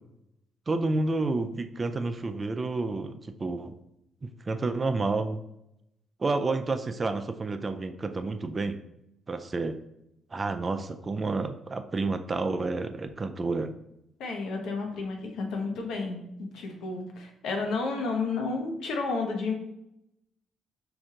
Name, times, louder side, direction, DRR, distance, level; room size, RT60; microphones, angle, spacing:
voice 1, 0.7-3.7 4.2-5.4 6.2-8.8 9.3-9.8 10.3-13.7, right 3 dB, 30° right, 8 dB, 0.4 m, -30 dB
voice 2, 14.2-19.5, left 3 dB, 80° left, 3 dB, 0.9 m, -31 dB
4.9 x 2.6 x 3.8 m, 0.82 s
cardioid pair, 90°, 0 cm